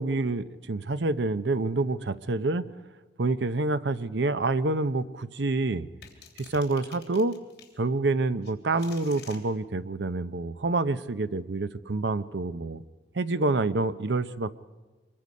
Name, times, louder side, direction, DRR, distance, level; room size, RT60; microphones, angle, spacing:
voice 1, 0.0-2.6 3.2-5.9 6.4-7.3 7.8-12.8 13.2-14.5, right 3 dB, 70° right, 14 dB, 0.7 m, -27 dB
sound 1, 6.0-7.7 8.4-9.4, left 7 dB, 60° left, 3.1 m, -49 dB
25.0 x 22.0 x 5.3 m, 1.3 s
head